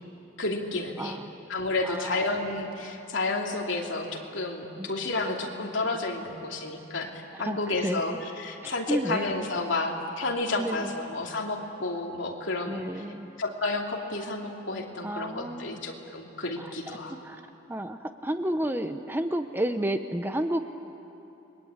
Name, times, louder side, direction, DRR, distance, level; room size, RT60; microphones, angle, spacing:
voice 1, 0.4-1.2 1.5-12.8 13.4-17.2, left 2 dB, 65° left, 0 dB, 3.0 m, -31 dB
voice 2, 1.0-1.3 1.8-2.2 4.8-4.9 7.3-8.0 8.6-9.3 10.5-11.0 12.7-13.3 15.0-15.8 16.6-17.0 17.2-17.4 17.7-20.6, right 1 dB, 10° right, 7 dB, 0.8 m, -31 dB
29.5 x 22.0 x 8.8 m, 2.8 s
head